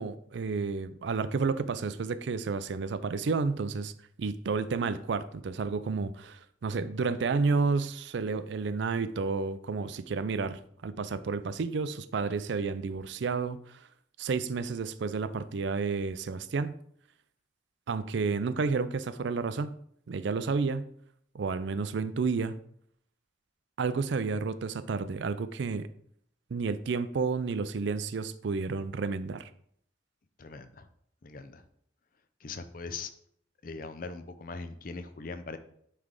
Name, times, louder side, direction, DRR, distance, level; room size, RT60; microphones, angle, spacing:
voice 1, 0.0-3.9 4.2-13.6 14.2-16.8 17.9-19.7 20.1-20.9 21.3-22.6 23.8-25.9 26.5-29.5, right 4 dB, 65° right, 13 dB, 0.4 m, -31 dB
voice 2, 30.4-30.9 31.2-31.6 32.4-33.1 33.6-35.6, left 4 dB, 45° left, 9 dB, 0.5 m, -41 dB
9.5 x 3.3 x 3.7 m, 0.67 s
head